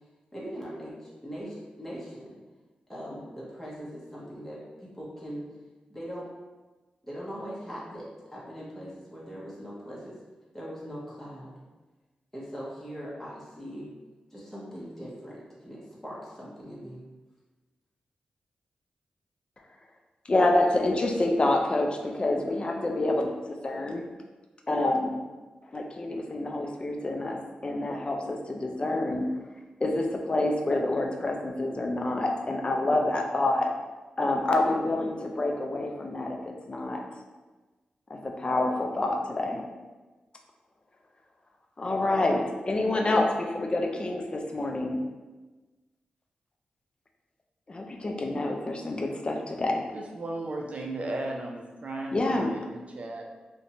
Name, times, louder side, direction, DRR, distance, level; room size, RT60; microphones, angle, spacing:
voice 1, 0.3-2.3 2.9-5.4 5.9-6.3 7.0-8.0 8.3-10.1 10.5-11.6 12.3-13.9 14.3-17.0, equal, 10° left, -7 dB, 0.8 m, -40 dB
voice 2, 20.3-24.1 24.7-25.2 25.7-29.3 29.8-33.7 34.2-37.0 38.1-39.6 41.8-45.0 47.7-49.8 52.1-52.5, left 2 dB, 35° left, 2 dB, 0.4 m, -27 dB
voice 3, 49.9-53.4, right 2 dB, 50° right, 0 dB, 0.5 m, -35 dB
2.5 x 2.2 x 2.8 m, 1.2 s
cardioid pair, 55°, 3 cm